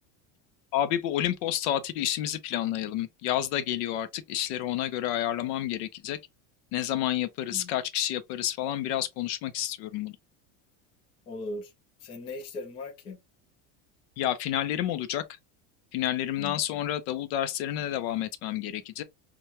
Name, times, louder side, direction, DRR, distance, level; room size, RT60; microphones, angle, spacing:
voice 1, 0.7-6.2 6.7-10.2 14.2-15.2 15.9-19.0, left 12 dB, 55° left, 0.6 m, -29 dB
voice 2, 11.3-11.7 12.0-13.2 16.4-16.6, left 2 dB, 15° left, 0.3 m, -38 dB
6.0 x 2.2 x 2.7 m
cardioid pair, 180°, 38 cm